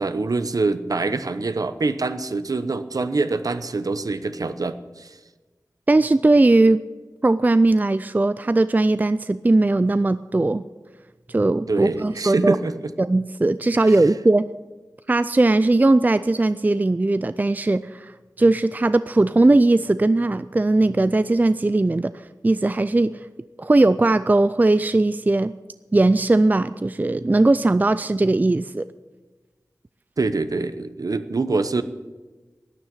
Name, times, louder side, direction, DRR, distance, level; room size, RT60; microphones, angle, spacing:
voice 1, 0.0-5.2 11.7-12.7 13.8-13.9 30.2-31.8, right 3 dB, 60° right, 11 dB, 0.9 m, -25 dB
voice 2, 5.9-6.8 7.2-10.7 11.3-12.6 13.0-14.5 15.1-18.1 18.4-22.1 22.4-23.2 23.6-25.5 25.9-28.8, right 2 dB, 25° right, 14 dB, 0.4 m, -19 dB
12.0 x 9.8 x 9.0 m, 1.3 s
wide cardioid pair, 85°, 7 cm